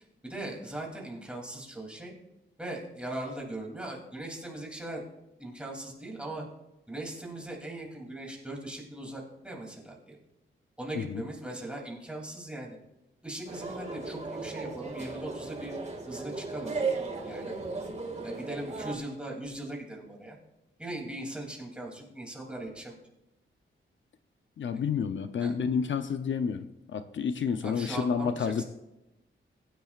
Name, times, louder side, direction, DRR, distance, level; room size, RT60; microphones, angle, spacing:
voice 1, 0.2-2.1 2.6-5.0 5.4-6.4 6.9-10.2 10.8-12.8 13.2-15.8 16.1-16.7 17.2-17.6 18.2-20.4 20.8-22.9 24.7-24.8 25.4-25.5 27.6-28.6, right 1 dB, 5° right, -2 dB, 2.9 m, -39 dB
sound 1, 13.5-19.0, right 4 dB, 35° right, 2.0 m, -36 dB
voice 2, 24.6-28.6, left 6 dB, 65° left, 9 dB, 0.7 m, -30 dB
21.5 x 10.5 x 2.5 m, 0.94 s
wide cardioid pair, 135°, 21 cm